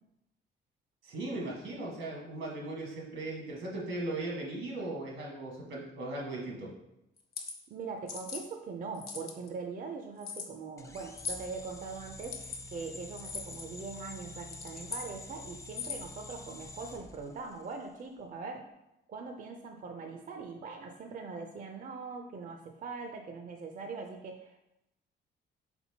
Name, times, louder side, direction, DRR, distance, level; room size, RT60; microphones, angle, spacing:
voice 1, 1.0-6.7, right 2 dB, 80° right, -2 dB, 1.4 m, -38 dB
sound 1, 7.2-7.5 8.1-8.4 8.9-9.5 10.2-10.5 11.2-11.5 12.2-12.6 13.2-13.6 14.4-15.1 15.7-16.1, left 5 dB, 50° left, 0.7 m, -40 dB
voice 2, 7.7-18.7 19.1-24.6, right 4 dB, 45° right, 4 dB, 0.5 m, -42 dB
sound 2, 10.8-17.9, left 2 dB, 15° left, 0.4 m, -48 dB
4.3 x 3.9 x 2.8 m, 0.88 s
cardioid pair, 90°, 20 cm